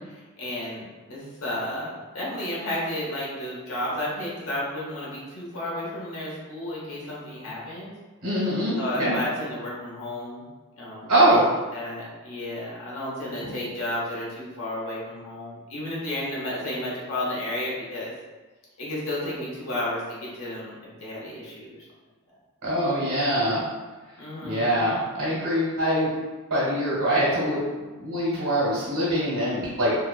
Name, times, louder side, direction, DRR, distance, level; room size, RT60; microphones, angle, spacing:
voice 1, 0.4-7.9 8.8-10.4 10.8-11.4 11.7-18.1 18.8-21.8 24.2-24.8, left 1 dB, 65° left, -6 dB, 0.9 m, -32 dB
voice 2, 8.2-9.2 11.1-11.4 13.4-13.6 22.6-23.6 24.4-26.1 26.5-27.6 28.0-30.0, right 1 dB, 90° right, -9 dB, 1.0 m, -23 dB
2.8 x 2.2 x 2.3 m, 1.3 s
head